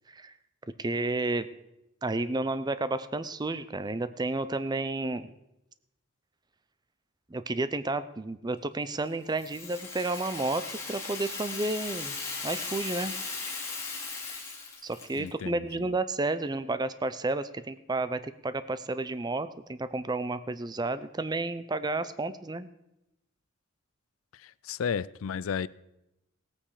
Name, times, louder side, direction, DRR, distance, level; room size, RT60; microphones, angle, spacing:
voice 1, 0.8-1.5 2.0-5.3 7.3-12.2 12.4-13.2 14.8-22.7, right 2 dB, 20° right, 13 dB, 0.5 m, -31 dB
Rattle (instrument), 9.3-15.3, left 4 dB, 15° left, 2.5 m, -37 dB
voice 2, 15.2-15.9 24.3-25.7, left 7 dB, 90° left, 20 dB, 0.4 m, -34 dB
18.0 x 8.8 x 4.9 m, 0.88 s
head